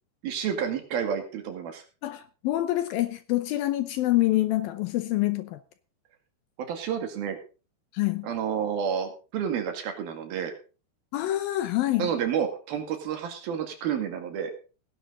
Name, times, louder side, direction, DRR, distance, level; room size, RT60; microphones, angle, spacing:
voice 1, 0.2-1.8 6.7-7.4 8.2-10.5 12.0-14.5, right 8 dB, 65° right, 3.9 m, -30 dB
voice 2, 2.0-5.6 7.9-8.3 11.1-12.1, left 16 dB, 75° left, 2.3 m, -26 dB
17.5 x 10.5 x 3.9 m
omnidirectional pair, 4.7 m